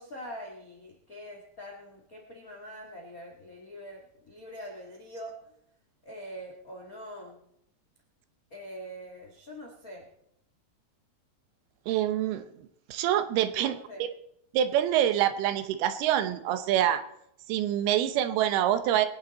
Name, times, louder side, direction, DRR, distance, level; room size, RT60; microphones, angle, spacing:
voice 1, 0.0-5.6 6.0-7.4 8.5-10.1 13.6-14.0, equal, 60° left, 0 dB, 0.9 m, -44 dB
voice 2, 11.9-12.5 12.9-14.1 14.5-17.0 17.5-19.1, right 11 dB, 80° right, 11 dB, 2.7 m, -26 dB
22.5 x 9.4 x 4.0 m, 0.74 s
omnidirectional pair, 4.7 m